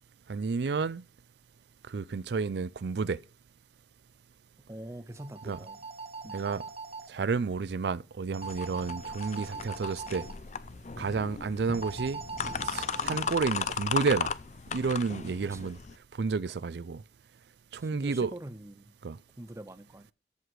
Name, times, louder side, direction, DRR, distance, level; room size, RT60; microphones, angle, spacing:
voice 1, 0.3-1.0 1.9-3.2 5.4-5.6 6.3-6.6 7.1-10.3 11.0-12.2 12.6-14.3 14.7-15.8 16.2-17.0 17.7-18.3 19.0-19.2, right 4 dB, 70° right, 0.4 m, -31 dB
voice 2, 4.7-5.8 6.2-6.6 15.4-15.8 17.8-18.9 19.4-20.1, right 1 dB, 15° right, 0.5 m, -44 dB
sound 1, 5.1-7.1 8.3-10.3 11.7-13.7, right 4 dB, 35° right, 1.0 m, -42 dB
sound 2, 8.4-16.0, left 6 dB, 40° left, 0.5 m, -36 dB
13.5 x 4.9 x 6.1 m
head